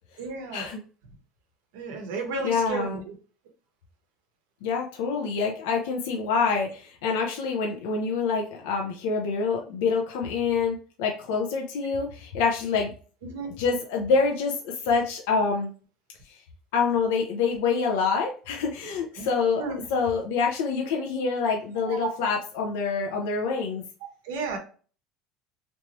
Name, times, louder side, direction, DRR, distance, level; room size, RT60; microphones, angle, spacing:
voice 1, 0.2-0.7 1.7-3.1 13.2-13.5 19.2-19.3 19.6-19.8 21.9-22.1 24.2-24.6, right 4 dB, 85° right, 3 dB, 1.1 m, -32 dB
voice 2, 2.4-3.0 4.6-12.9 13.6-15.7 16.7-19.6 19.9-23.8, left 5 dB, 80° left, 1 dB, 0.7 m, -26 dB
3.3 x 3.0 x 3.0 m, 0.38 s
cardioid pair, 140°, 0 cm